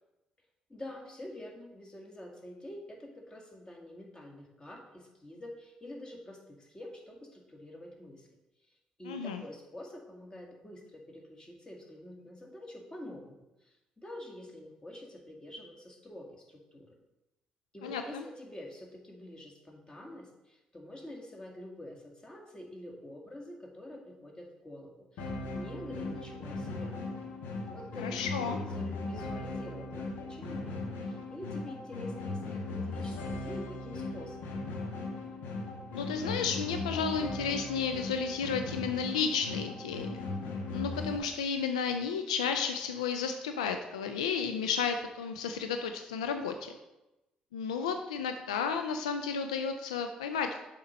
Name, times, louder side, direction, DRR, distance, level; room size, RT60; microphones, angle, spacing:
voice 1, 0.7-8.3 9.0-16.9 17.7-27.0 27.7-34.4, left 1 dB, 20° left, 1 dB, 1.9 m, -47 dB
voice 2, 9.1-9.4 17.8-18.0 28.0-28.6 35.9-40.1 40.7-46.7 47.5-50.6, left 6 dB, 85° left, 7 dB, 0.4 m, -32 dB
sound 1, 25.2-41.2, left 2 dB, 65° left, 1.1 m, -38 dB
7.2 x 4.3 x 5.2 m, 0.97 s
hypercardioid pair, 45°, 4 cm